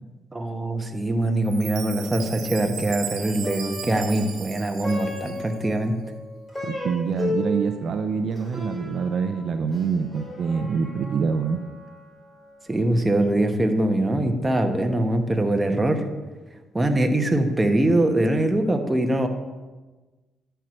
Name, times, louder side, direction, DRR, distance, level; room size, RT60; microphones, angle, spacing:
voice 1, 0.3-6.0 12.7-16.0 16.7-19.3, right 1 dB, 15° right, 5 dB, 1.0 m, -23 dB
Chime, 1.4-5.7, right 8 dB, 85° right, 1.0 m, -37 dB
Plucked string instrument, 3.2-12.7, left 2 dB, 15° left, 3.3 m, -36 dB
voice 2, 6.6-11.6, right 5 dB, 60° right, 8 dB, 0.5 m, -25 dB
9.9 x 4.5 x 6.2 m, 1.2 s
cardioid pair, 90°, 0 cm